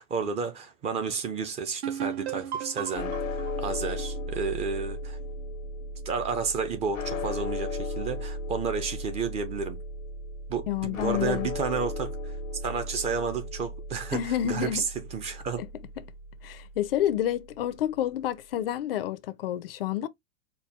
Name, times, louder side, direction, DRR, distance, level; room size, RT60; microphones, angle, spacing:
voice 1, 0.0-5.2 6.1-9.8 10.5-12.4 12.6-15.6, right 5 dB, 15° right, 0.5 m, -31 dB
sound 1, 1.8-5.4, right 9 dB, 55° right, 0.8 m, -36 dB
sound 2, 2.9-17.2, left 2 dB, 80° left, 0.7 m, -36 dB
voice 2, 10.7-11.5 14.1-14.8 15.6-15.7 16.4-20.1, left 11 dB, 50° left, 0.5 m, -29 dB
4.4 x 2.2 x 3.2 m
figure-of-eight pair, 100°, 38 cm